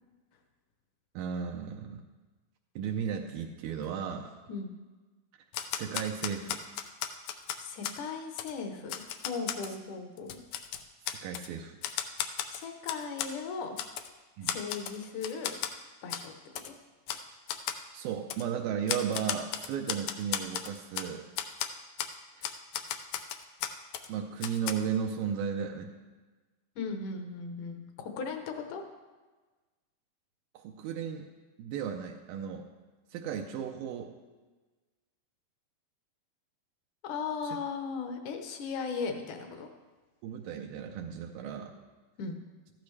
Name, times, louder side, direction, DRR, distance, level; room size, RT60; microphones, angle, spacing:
voice 1, 1.2-2.0 2.8-4.3 5.7-6.6 11.1-11.8 14.4-14.6 17.3-17.4 17.9-21.3 22.4-22.5 24.1-25.9 30.5-31.3 31.6-32.7 33.1-34.1 37.4-37.6 40.2-41.8, right 7 dB, 80° right, 2 dB, 2.4 m, -35 dB
Typewriter, 5.5-8.0 8.4-8.5 8.9-9.7 10.2-11.5 11.8-13.3 13.8-14.1 14.5-15.0 15.2-15.7 16.1-16.3 16.6-16.7 17.1-17.2 17.5-17.8 18.3-18.4 18.9-21.1 21.4-21.7 22.0-22.1 22.4-24.1 24.4-24.7, left 10 dB, 85° left, 1.7 m, -35 dB
voice 2, 7.6-10.3 12.5-13.7 14.4-15.5 16.0-16.3 26.8-28.8 37.0-39.7 42.2-42.4, left 5 dB, 70° left, 5 dB, 2.2 m, -37 dB
14.0 x 12.0 x 3.2 m, 1.3 s
omnidirectional pair, 4.2 m